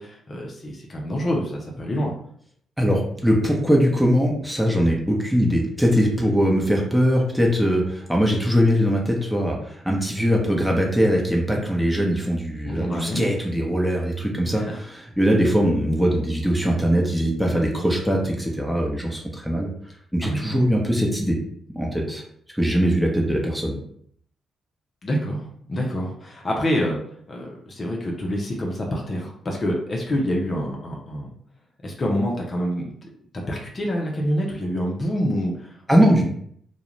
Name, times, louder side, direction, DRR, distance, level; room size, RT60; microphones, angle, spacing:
voice 1, 0.0-2.1 12.7-13.2 14.5-14.8 20.2-20.7 25.0-27.0 27.3-31.3 31.8-32.9 33.3-36.3, equal, 45° left, -1 dB, 0.6 m, -27 dB
voice 2, 2.8-19.7 20.1-21.4 21.7-22.2 22.5-23.8 35.9-36.3, equal, 5° right, -1 dB, 0.8 m, -21 dB
2.3 x 2.1 x 3.0 m, 0.65 s
hypercardioid pair, 40°, 0 cm